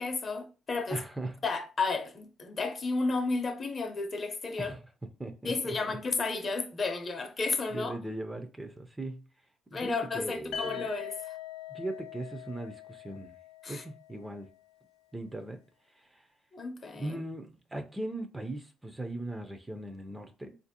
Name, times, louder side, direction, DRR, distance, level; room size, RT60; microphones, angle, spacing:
voice 1, 0.0-1.0 1.4-4.7 5.4-7.9 9.7-11.1 13.6-13.8 16.5-17.2, left 3 dB, 35° left, 0.6 m, -32 dB
voice 2, 0.9-1.4 4.6-4.8 5.2-6.0 7.7-9.2 9.7-10.9 11.7-13.3 13.7-14.5 15.1-15.6 15.9-16.3 17.0-20.6, right 1 dB, 15° right, 0.4 m, -39 dB
sound 1, 10.5-14.4, left 9 dB, 80° left, 0.4 m, -42 dB
3.8 x 2.5 x 2.7 m
cardioid pair, 110°, 0 cm